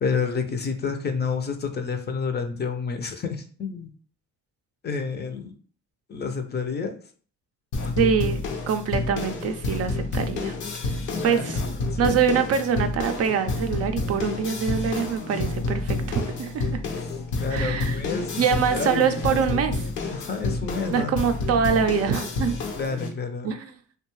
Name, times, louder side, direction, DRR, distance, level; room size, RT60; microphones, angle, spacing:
voice 1, 0.0-3.9 4.8-5.5 6.1-6.9 7.8-8.1 11.1-11.6 11.9-12.2 17.4-19.4 20.1-21.3 22.8-23.5, left 5 dB, 35° left, 6 dB, 0.5 m, -29 dB
sound 1, 7.7-23.1, left 3 dB, 80° left, 0.7 m, -29 dB
voice 2, 8.0-10.6 10.9-11.6 12.0-16.8 17.5-18.0 18.4-19.8 20.9-22.6 23.4-23.7, right 7 dB, 55° right, 8 dB, 0.4 m, -24 dB
2.6 x 2.2 x 3.0 m, 0.42 s
cardioid pair, 90°, 30 cm